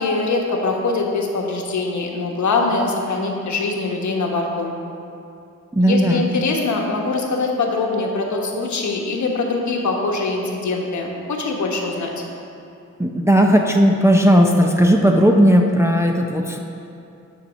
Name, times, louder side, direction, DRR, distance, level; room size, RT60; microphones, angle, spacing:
voice 1, 0.0-4.8 5.8-12.1, left 3 dB, 70° left, 0 dB, 1.2 m, -23 dB
voice 2, 5.7-6.3 13.0-16.6, equal, 10° right, 1 dB, 0.5 m, -15 dB
9.4 x 4.2 x 6.2 m, 2.7 s
wide cardioid pair, 110°, 30 cm